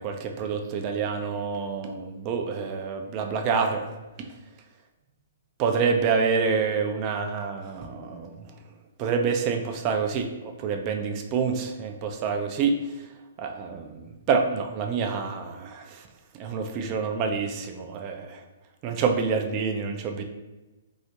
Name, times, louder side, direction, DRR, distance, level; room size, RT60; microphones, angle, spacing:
voice 1, 0.0-3.9 4.2-4.3 5.6-8.4 9.0-12.8 13.4-16.0 16.4-18.4 18.8-20.2, right 5 dB, 35° right, 5 dB, 0.3 m, -27 dB
2.5 x 2.3 x 2.9 m, 1.1 s
figure-of-eight pair, 120°, 0 cm